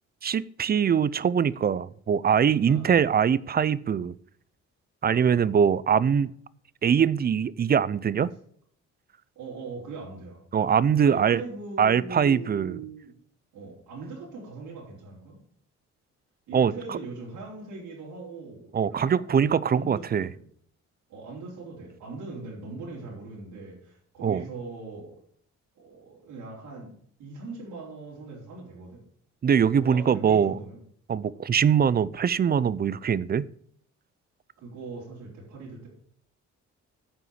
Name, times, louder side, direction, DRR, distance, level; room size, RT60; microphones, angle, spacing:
voice 1, 0.2-4.1 5.0-6.3 6.8-8.3 10.5-11.4 11.8-12.8 16.5-17.0 18.7-20.3 24.2-24.4 29.4-30.6 31.1-33.5, right 7 dB, 30° right, 0.4 m, -23 dB
voice 2, 2.7-3.0 5.1-5.4 9.4-10.4 11.0-13.1 13.5-15.4 16.5-20.4 21.1-25.1 25.8-26.9 27.2-29.0 29.8-30.8 34.6-35.9, right 3 dB, 90° right, 4.1 m, -40 dB
9.5 x 5.7 x 7.2 m
cardioid pair, 90°, 30 cm